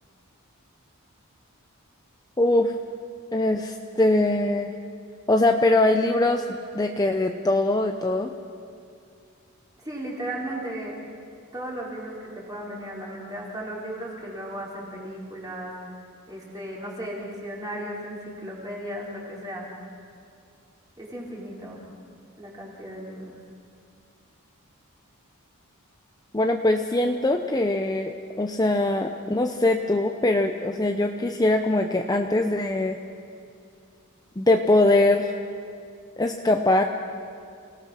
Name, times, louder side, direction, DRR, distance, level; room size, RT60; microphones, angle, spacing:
voice 1, 2.4-2.7 3.3-4.7 5.3-8.3 26.3-33.0 34.4-35.3 36.2-36.8, left 2 dB, 15° left, 4 dB, 0.7 m, -22 dB
voice 2, 9.8-10.9 11.5-16.0 16.3-19.7 21.0-21.8 22.4-23.4, right 1 dB, 15° right, -4 dB, 4.3 m, -35 dB
28.5 x 17.5 x 6.3 m, 2.4 s
head